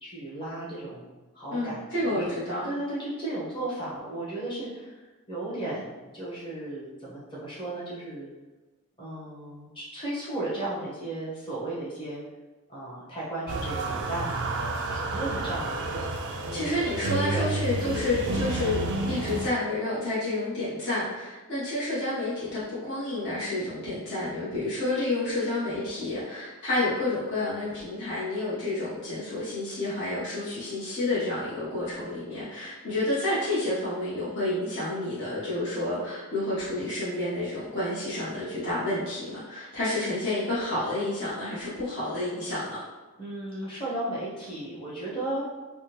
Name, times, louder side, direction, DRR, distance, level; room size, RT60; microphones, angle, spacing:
voice 1, 0.0-2.3 2.6-8.3 9.0-12.2 12.7-14.6 14.9-16.8 17.3-17.5 43.2-45.4, right 1 dB, 20° left, -8 dB, 1.0 m, -35 dB
voice 2, 1.5-2.7 16.5-42.8, left 2 dB, 55° left, -11 dB, 0.9 m, -30 dB
sound 1, 13.5-19.5, right 2 dB, 55° right, 0.3 m, -30 dB
3.5 x 2.1 x 2.9 m, 1.2 s
head